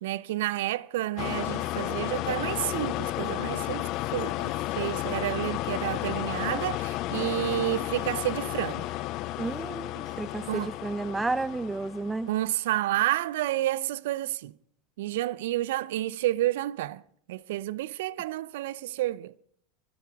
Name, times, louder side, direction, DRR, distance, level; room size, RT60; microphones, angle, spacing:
voice 1, 0.0-8.8 10.5-10.7 12.3-14.5 15.0-17.0 17.3-19.4, right 15 dB, 70° right, 0.5 m, -30 dB
sound 1, 1.2-12.4, left 16 dB, 50° left, 0.6 m, -32 dB
Harp, 3.1-13.7, right 3 dB, 40° right, 4.3 m, -56 dB
voice 2, 9.4-12.3, right 3 dB, 15° right, 0.7 m, -32 dB
24.0 x 11.0 x 3.5 m
hypercardioid pair, 85°, 0 cm